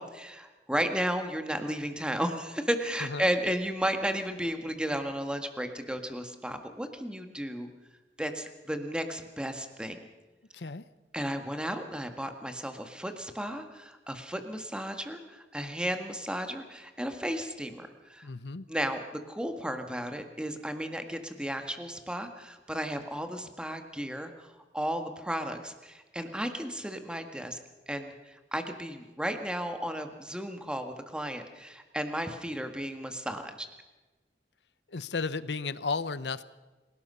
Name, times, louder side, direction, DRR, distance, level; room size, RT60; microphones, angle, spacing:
voice 1, 0.0-7.7 8.2-10.0 11.1-18.3 18.7-27.6 27.9-33.7, equal, 5° right, 6 dB, 1.7 m, -34 dB
voice 2, 10.5-10.8 18.2-18.7 34.9-36.4, left 4 dB, 75° left, 15 dB, 0.8 m, -34 dB
27.0 x 18.0 x 5.6 m, 1.2 s
head